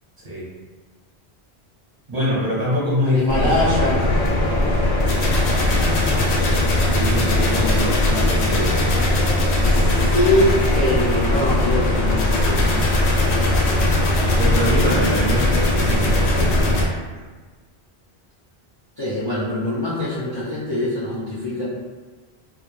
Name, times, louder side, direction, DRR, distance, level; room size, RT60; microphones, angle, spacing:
voice 1, 2.1-3.7 6.7-8.8 14.1-16.7, equal, 40° right, -8 dB, 0.8 m, -24 dB
voice 2, 3.0-4.0 7.3-7.7 7.9-8.4 9.5-12.7 19.0-21.6, left 1 dB, 40° left, -10 dB, 0.4 m, -23 dB
sound 1, 3.3-16.9, left 1 dB, 90° left, 0.8 m, -19 dB
2.2 x 2.1 x 3.0 m, 1.3 s
omnidirectional pair, 1.1 m